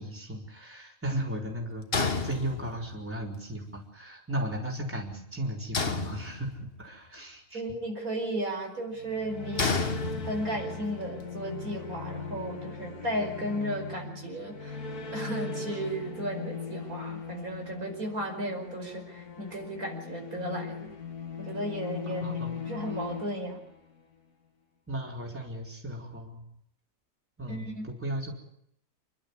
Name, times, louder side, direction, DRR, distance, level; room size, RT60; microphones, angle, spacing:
voice 1, 0.0-7.6 22.1-22.6 24.9-26.4 27.4-28.3, right 1 dB, 10° right, -2 dB, 4.4 m, -36 dB
sound 1, 1.9-3.0 5.7-6.8 9.6-10.7, left 4 dB, 40° left, 1.6 m, -30 dB
voice 2, 7.5-9.7 10.2-14.8 15.1-20.9 21.4-22.4 22.7-23.6 27.5-27.9, right 1 dB, 70° right, 2 dB, 5.7 m, -34 dB
sound 2, 8.9-24.1, left 4 dB, 85° left, 2.4 m, -39 dB
28.5 x 12.0 x 9.7 m, 0.75 s
omnidirectional pair, 1.6 m